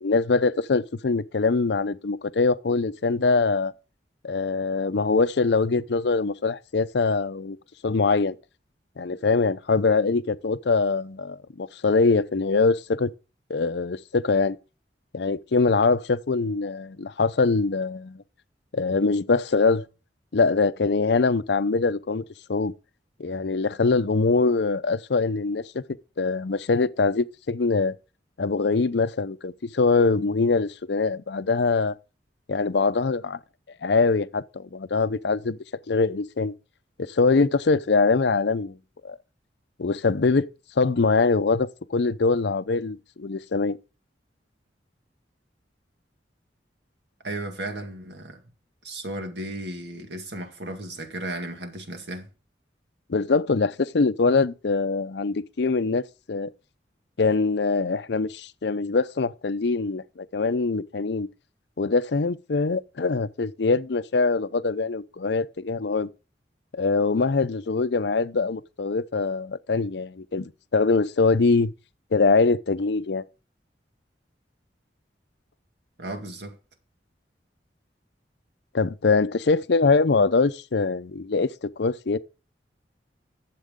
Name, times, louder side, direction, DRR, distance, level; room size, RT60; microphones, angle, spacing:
voice 1, 0.0-3.7 4.2-7.6 7.8-8.3 9.0-13.1 13.5-14.6 15.1-18.2 18.7-19.8 20.3-22.2 22.5-22.7 23.2-25.8 26.2-28.0 28.4-32.0 32.5-33.4 33.8-35.6 35.9-36.5 37.1-38.8 39.0-39.2 39.8-40.5 40.8-43.8 53.1-56.0 56.3-56.5 57.2-61.3 61.8-66.1 66.7-71.7 72.1-73.2 78.7-82.2, left 4 dB, 70° left, 0.6 m, -23 dB
voice 2, 47.2-48.4 48.8-52.3 76.0-76.6, right 1 dB, 70° right, 1.9 m, -34 dB
12.0 x 7.5 x 3.7 m
head